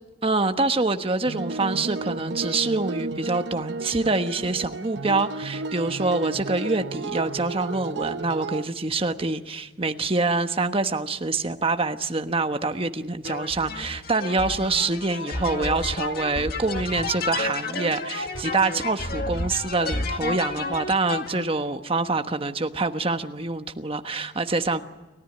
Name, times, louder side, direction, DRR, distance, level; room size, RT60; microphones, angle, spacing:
voice 1, 0.2-24.8, right 3 dB, 30° right, 7 dB, 1.2 m, -26 dB
sound 1, 1.3-8.6, right 3 dB, 70° right, 0.9 m, -33 dB
sound 2, 13.2-21.4, left 3 dB, 55° left, 2.0 m, -31 dB
29.5 x 14.0 x 9.8 m, 1.2 s
head